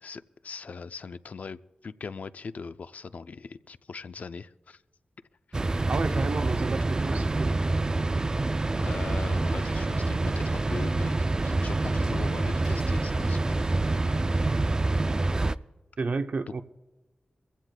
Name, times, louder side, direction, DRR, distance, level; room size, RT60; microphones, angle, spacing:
voice 1, 0.0-4.8 5.5-5.6 8.8-14.3, left 5 dB, 60° left, 0.4 m, -40 dB
sound 1, 5.5-15.6, right 2 dB, 25° right, 0.3 m, -26 dB
voice 2, 5.9-7.5 16.0-16.6, right 4 dB, 55° right, 0.7 m, -31 dB
23.0 x 15.5 x 2.2 m
wide cardioid pair, 125°, 3 cm